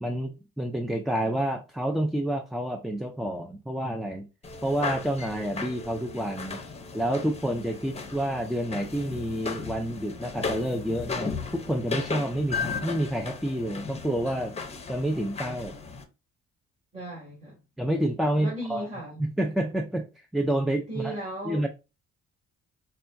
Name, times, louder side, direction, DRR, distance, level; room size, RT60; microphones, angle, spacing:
voice 1, 0.0-4.3 4.6-6.6 6.9-14.6 14.9-15.8 17.8-18.9 19.2-21.2 21.4-21.7, right 1 dB, ahead, 0.3 m, -29 dB
sound 1, 4.4-16.0, left 4 dB, 20° left, 0.7 m, -36 dB
voice 2, 16.9-17.5 18.4-19.2 20.9-21.7, right 1 dB, 25° right, 2.3 m, -36 dB
5.4 x 2.3 x 2.5 m
cardioid pair, 90°, 30 cm